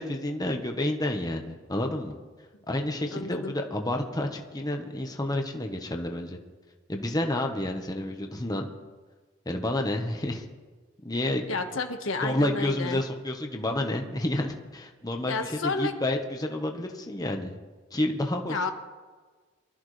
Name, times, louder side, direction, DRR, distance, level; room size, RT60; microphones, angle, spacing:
voice 1, 0.0-2.2 2.7-6.4 6.9-8.7 9.4-10.4 11.0-11.4 12.2-17.6 17.9-18.7, left 1 dB, 20° left, 3 dB, 1.2 m, -30 dB
voice 2, 3.1-3.5 11.5-13.0 15.3-16.0 18.5-18.7, left 3 dB, 90° left, 4 dB, 1.5 m, -31 dB
23.5 x 13.5 x 3.3 m, 1.4 s
head